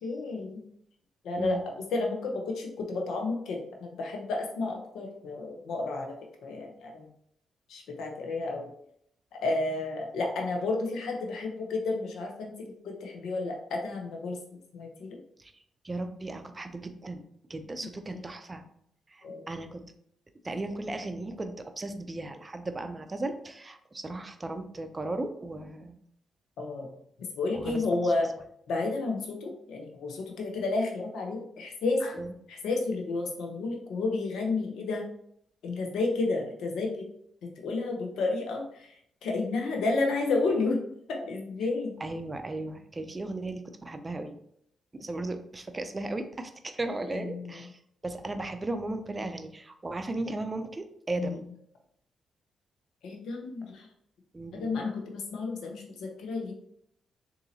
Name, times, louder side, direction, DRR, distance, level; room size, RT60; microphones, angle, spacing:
voice 1, 0.0-0.7 1.2-1.6 1.9-6.1 6.4-7.1 7.7-8.7 9.4-12.5 12.8-14.4 14.7-15.2 19.2-19.4 26.6-26.9 27.3-28.3 28.7-32.2 32.5-35.0 35.6-37.1 37.6-38.9 39.2-40.8 41.1-42.0 47.1-47.6 51.2-51.4 53.0-53.9 54.5-56.5, left 3 dB, 75° left, 1 dB, 0.8 m, -31 dB
voice 2, 15.8-17.2 17.5-18.6 19.1-19.8 20.4-26.0 27.5-27.8 32.2-32.3 42.0-44.4 44.9-51.4 54.3-54.7, right 2 dB, 30° right, 7 dB, 0.5 m, -36 dB
3.9 x 2.7 x 2.7 m, 0.70 s
supercardioid pair, 50°, 0 cm